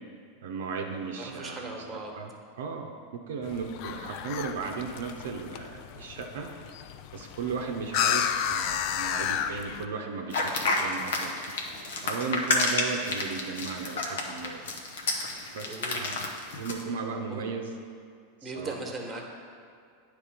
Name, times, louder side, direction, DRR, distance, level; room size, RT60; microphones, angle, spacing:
voice 1, 0.4-1.7 2.2-2.3 2.6-6.5 7.1-11.3 12.0-14.6 15.5-16.2 16.6-17.7 18.4-18.7, right 5 dB, 75° right, 2 dB, 0.6 m, -35 dB
voice 2, 1.2-2.1 15.7-16.1 17.3-17.4 18.4-19.3, right 2 dB, 15° right, 0 dB, 1.3 m, -38 dB
sound 1, 3.4-9.9, left 9 dB, 55° left, 0.3 m, -32 dB
sound 2, 10.3-16.8, left 3 dB, 75° left, 0.9 m, -29 dB
9.4 x 3.2 x 5.0 m, 2.3 s
hypercardioid pair, 95°, 0 cm